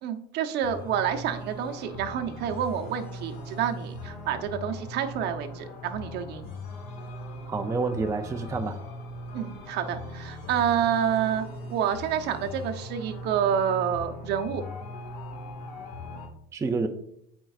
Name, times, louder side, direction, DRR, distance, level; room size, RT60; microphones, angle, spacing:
voice 1, 0.0-6.5 9.3-14.6, right 9 dB, 55° right, 6 dB, 0.8 m, -28 dB
sound 1, 0.6-16.3, left 2 dB, 50° left, 1.6 m, -39 dB
voice 2, 7.5-8.8 16.5-16.9, right 4 dB, 15° right, 6 dB, 0.4 m, -28 dB
8.8 x 4.5 x 2.4 m, 0.70 s
supercardioid pair, 125°, 21 cm